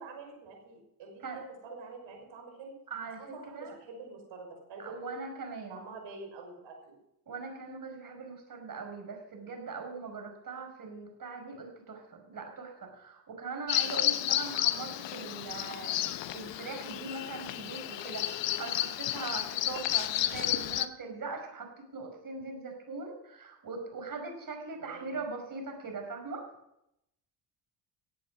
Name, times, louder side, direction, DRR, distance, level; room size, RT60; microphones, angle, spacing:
voice 1, 0.0-2.7 3.2-5.2 5.7-6.9 24.8-25.0, right 3 dB, 70° right, 2 dB, 6.1 m, -46 dB
voice 2, 2.9-3.2 3.5-3.7 4.8-5.8 7.3-16.0 16.3-26.4, right 4 dB, 45° right, 3 dB, 5.4 m, -41 dB
Bird vocalization bird call bird song, 13.7-20.9, left 13 dB, 65° left, 0.9 m, -32 dB
16.0 x 8.4 x 6.3 m, 0.82 s
supercardioid pair, 70°, 47 cm